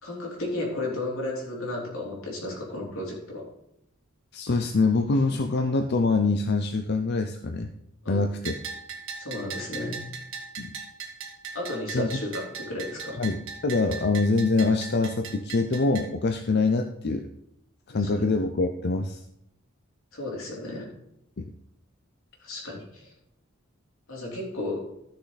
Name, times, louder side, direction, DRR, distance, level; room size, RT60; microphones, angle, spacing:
voice 1, 0.0-3.4 8.0-8.2 9.2-10.0 11.5-13.2 17.9-18.1 20.1-20.9 22.4-23.1 24.1-24.8, left 2 dB, 85° left, -3 dB, 3.4 m, -33 dB
voice 2, 4.3-7.7 8.1-8.6 10.6-10.7 11.9-12.1 13.2-17.3 17.9-19.2 21.4-21.5, left 3 dB, 50° left, 6 dB, 0.6 m, -24 dB
Bell, 8.4-16.1, right 6 dB, 65° right, 1.6 m, -39 dB
14.0 x 6.7 x 4.0 m, 0.81 s
head